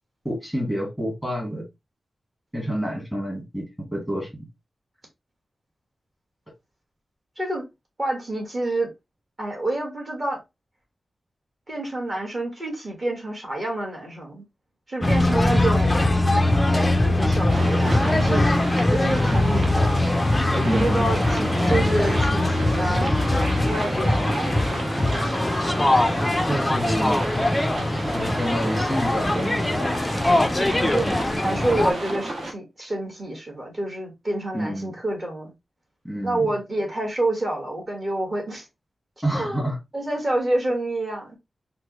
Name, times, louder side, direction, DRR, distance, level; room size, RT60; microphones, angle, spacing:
voice 1, 0.2-1.6 2.5-4.4 20.6-21.1 21.7-21.8 26.5-27.2 28.1-29.9 34.5-34.9 36.0-36.5 39.2-39.8, equal, 10° right, 1.4 m, -28 dB
voice 2, 8.0-8.9 9.4-10.4 11.7-14.4 14.9-15.9 16.7-18.4 18.9-19.9 20.5-25.2 30.8-35.5 36.2-38.6 39.3-39.6 39.9-41.4, right 1 dB, 35° right, 1.3 m, -28 dB
sound 1, 15.0-31.9, left 1 dB, 15° left, 0.4 m, -22 dB
sound 2, 17.5-32.5, right 1 dB, 65° right, 1.0 m, -32 dB
4.5 x 2.0 x 2.8 m
wide cardioid pair, 155°, 0 cm